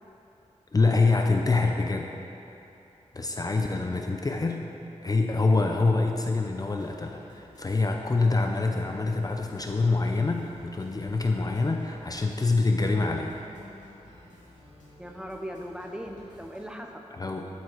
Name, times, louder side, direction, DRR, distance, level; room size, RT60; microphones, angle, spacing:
voice 1, 0.7-2.1 3.1-4.7 5.0-13.3 17.2-17.5, left 3 dB, 30° left, 3 dB, 0.6 m, -25 dB
sound 1, 6.6-16.7, left 1 dB, 85° left, 2.4 m, -53 dB
voice 2, 15.0-17.0, equal, 5° right, 2 dB, 0.8 m, -38 dB
12.5 x 7.3 x 4.6 m, 2.9 s
wide cardioid pair, 120°, 12 cm